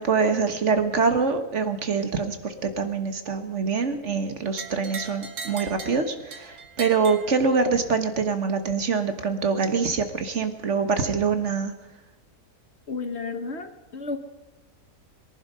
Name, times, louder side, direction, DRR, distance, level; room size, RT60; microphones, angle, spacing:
voice 1, 0.0-11.7, right 5 dB, 50° right, 8 dB, 1.5 m, -25 dB
sound 1, 4.6-8.0, right 5 dB, 90° right, 2.1 m, -39 dB
voice 2, 12.9-14.2, left 4 dB, 50° left, 8 dB, 1.2 m, -32 dB
22.5 x 11.0 x 5.4 m, 1.2 s
omnidirectional pair, 1.6 m